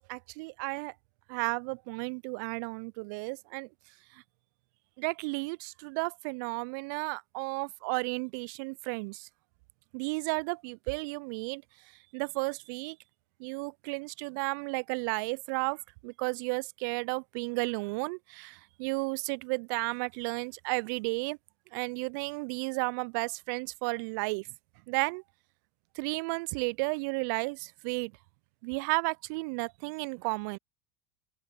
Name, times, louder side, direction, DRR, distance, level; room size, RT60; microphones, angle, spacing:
voice 1, 0.1-0.9 1.3-3.7 4.1-4.2 5.0-9.3 9.9-11.6 12.1-13.0 13.4-21.4 21.7-24.5 24.9-25.2 26.0-28.1 28.6-30.6, right 31 dB, 55° right, 0.4 m, -33 dB
open air
hypercardioid pair, 85°, 12 cm